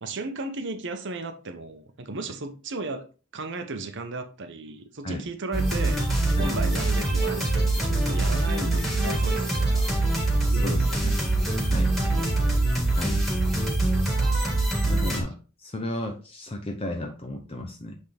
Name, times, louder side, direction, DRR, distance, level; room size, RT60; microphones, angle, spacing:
voice 1, 0.0-3.1 3.3-6.0 6.4-10.0 10.5-11.0 12.0-12.5, right 2 dB, 55° right, 0.9 m, -35 dB
sound 1, 5.5-15.2, right 2 dB, ahead, 1.7 m, -24 dB
voice 2, 10.5-11.2 11.6-11.9 12.9-13.2 14.8-18.0, left 1 dB, 25° left, 0.6 m, -34 dB
8.0 x 3.7 x 3.4 m
head